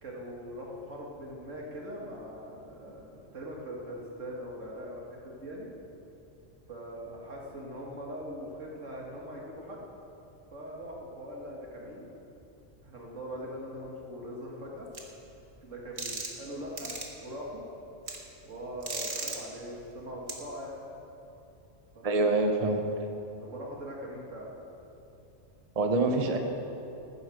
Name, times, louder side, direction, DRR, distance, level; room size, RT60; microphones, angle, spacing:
voice 1, 0.0-5.7 6.7-9.8 10.5-12.1 12.8-14.9 15.6-16.9 17.2-17.6 18.4-20.8 22.0-22.4 23.4-24.5, equal, 85° right, -2 dB, 2.4 m, -41 dB
sound 1, 14.9-15.0 16.0-16.4 16.8-17.1 18.1-18.2 18.8-19.4 20.3-20.4, right 3 dB, 65° right, 1.8 m, -35 dB
voice 2, 22.0-22.8 25.8-26.4, right 2 dB, 30° right, 4 dB, 1.0 m, -25 dB
15.0 x 9.5 x 6.5 m, 2.9 s
omnidirectional pair, 1.3 m